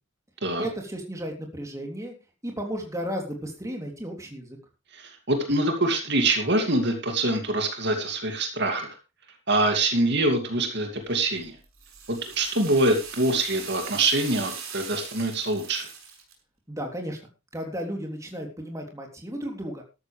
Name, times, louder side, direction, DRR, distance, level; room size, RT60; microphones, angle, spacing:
voice 1, 0.6-2.1 2.4-4.6 16.7-17.2 17.5-19.8, equal, 15° right, 2 dB, 3.3 m, -34 dB
voice 2, 4.9-9.0 9.5-11.5 12.1-15.8, right 2 dB, 55° right, 4 dB, 2.6 m, -24 dB
sound 1, 11.2-16.3, right 6 dB, 85° right, 6.3 m, -40 dB
13.5 x 13.5 x 3.4 m, 0.28 s
head